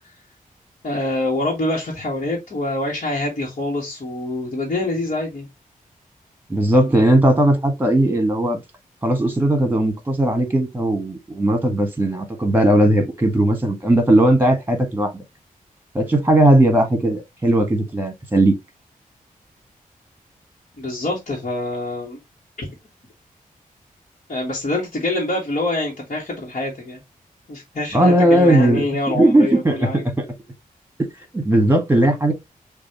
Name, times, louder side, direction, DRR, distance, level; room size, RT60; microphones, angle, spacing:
voice 1, 0.8-5.5 20.8-22.2 22.6-22.7 24.3-27.0 27.5-30.0, left 2 dB, 55° left, 1.6 m, -25 dB
voice 2, 6.5-8.6 9.0-15.2 15.9-18.5 27.9-28.9 29.1-30.2 31.3-32.3, right 1 dB, 15° right, 1.5 m, -17 dB
6.1 x 2.6 x 2.9 m
cardioid pair, 65°, 15 cm